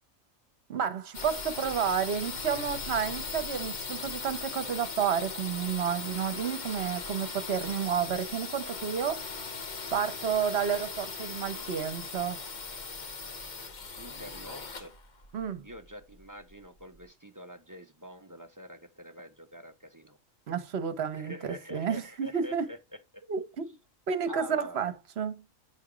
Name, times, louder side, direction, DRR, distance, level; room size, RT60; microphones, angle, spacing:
voice 1, 0.7-9.2 9.9-12.5 15.3-15.6 20.5-22.6 23.3-23.8 24.1-25.4, right 7 dB, 55° right, 1.2 m, -31 dB
sound 1, 1.1-16.8, left 4 dB, 40° left, 1.0 m, -39 dB
voice 2, 14.0-14.9 15.6-20.2 21.1-22.8 23.1-23.2 24.3-24.8, equal, 20° right, 0.7 m, -45 dB
9.1 x 3.5 x 4.9 m
omnidirectional pair, 1.4 m